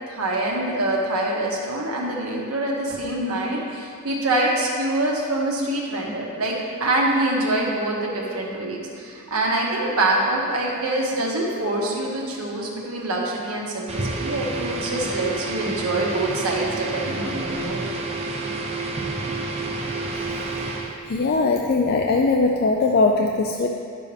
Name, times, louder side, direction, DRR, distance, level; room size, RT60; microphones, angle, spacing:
voice 1, 0.0-17.8, right 1 dB, 90° right, -2 dB, 1.4 m, -25 dB
sound 1, 13.9-21.0, right 3 dB, 30° right, 0.8 m, -29 dB
voice 2, 21.1-23.7, left 3 dB, 45° left, 1 dB, 0.4 m, -20 dB
10.5 x 6.7 x 3.5 m, 2.3 s
head